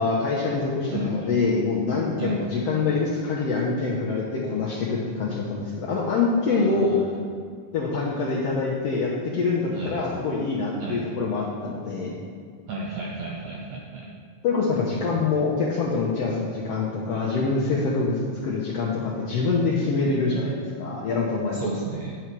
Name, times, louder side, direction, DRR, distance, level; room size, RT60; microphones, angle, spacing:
voice 1, 0.0-6.9 7.7-12.2 14.4-18.1 18.4-21.6, left 4 dB, 75° left, -5 dB, 1.5 m, -25 dB
voice 2, 0.9-1.3 2.2-2.4 6.5-7.0 9.7-10.0 10.8-11.0 12.7-14.1 21.5-22.2, right 2 dB, 75° right, -3 dB, 1.6 m, -32 dB
10.0 x 7.2 x 4.6 m, 2.1 s
omnidirectional pair, 4.1 m